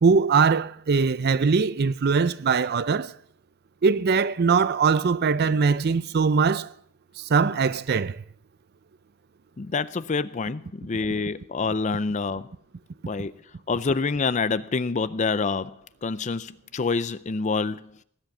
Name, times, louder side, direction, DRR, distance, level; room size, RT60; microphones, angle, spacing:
voice 1, 0.0-3.1 3.8-6.7 7.3-8.2, right 5 dB, 45° right, 0.5 m, -21 dB
voice 2, 9.6-12.5 13.1-13.3 13.7-15.7 16.0-17.9, left 4 dB, 30° left, 0.4 m, -27 dB
18.0 x 8.0 x 7.1 m
head